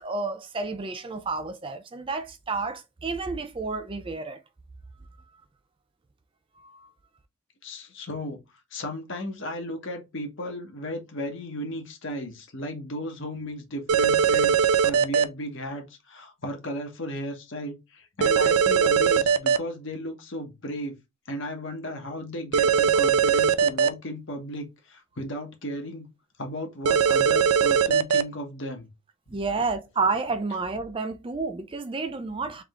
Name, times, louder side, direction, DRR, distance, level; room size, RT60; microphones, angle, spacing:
voice 1, 0.0-4.4 6.6-6.9 29.3-32.6, right 4 dB, 25° right, 0.4 m, -30 dB
voice 2, 7.6-8.4 8.7-21.0 21.3-26.1 26.4-28.9, left 1 dB, 55° left, 1.2 m, -35 dB
sound 1, 13.9-15.2 18.2-19.6 22.5-23.9 26.8-28.2, right 7 dB, 85° right, 0.5 m, -20 dB
3.6 x 3.3 x 3.6 m
head